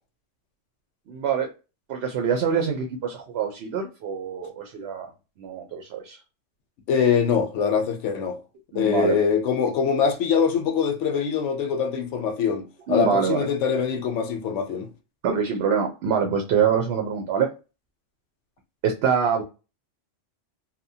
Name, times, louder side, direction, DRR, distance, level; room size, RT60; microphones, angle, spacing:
voice 1, 1.1-1.5 1.9-5.1 5.4-6.2 8.7-9.2 12.9-13.5 15.2-17.5 18.8-19.4, right 6 dB, 65° right, 0.7 m, -25 dB
voice 2, 6.9-8.4 8.7-14.9, left 6 dB, 75° left, 0.9 m, -23 dB
2.8 x 2.1 x 2.6 m
omnidirectional pair, 1.3 m